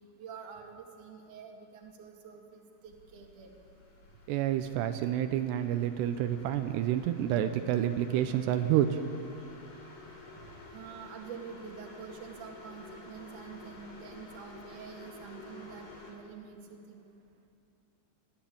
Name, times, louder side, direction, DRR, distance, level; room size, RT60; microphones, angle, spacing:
voice 1, 0.2-3.5 10.4-17.0, right 6 dB, 55° right, 1 dB, 3.2 m, -47 dB
sound 1, 2.9-16.1, left 2 dB, 65° left, 4.9 m, -51 dB
voice 2, 4.3-9.0, right 11 dB, 85° right, 8 dB, 2.9 m, -29 dB
21.0 x 14.5 x 8.7 m, 2.6 s
omnidirectional pair, 4.8 m